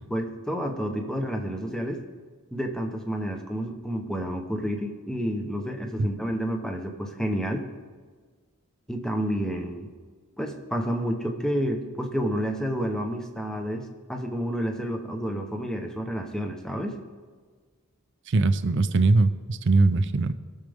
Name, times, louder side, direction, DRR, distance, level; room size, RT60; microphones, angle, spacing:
voice 1, 0.1-2.0 2.5-7.7 8.9-9.9 10.4-17.0, equal, 5° left, 3 dB, 0.9 m, -30 dB
voice 2, 18.3-20.3, right 3 dB, 55° right, 11 dB, 0.5 m, -21 dB
19.0 x 6.6 x 3.5 m, 1.5 s
head